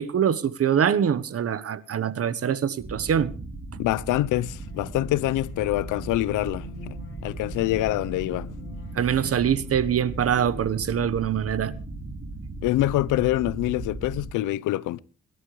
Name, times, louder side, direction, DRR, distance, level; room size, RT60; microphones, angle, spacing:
voice 1, 0.0-3.3 8.9-11.7, right 8 dB, 50° right, 1.2 m, -24 dB
sound 1, 2.8-14.3, right 2 dB, 30° right, 3.7 m, -37 dB
voice 2, 3.8-6.7 7.2-8.5 12.6-15.0, left 16 dB, 85° left, 0.7 m, -25 dB
sound 2, 4.3-11.1, left 9 dB, 45° left, 7.5 m, -46 dB
24.5 x 12.5 x 3.2 m
cardioid pair, 90°, 30 cm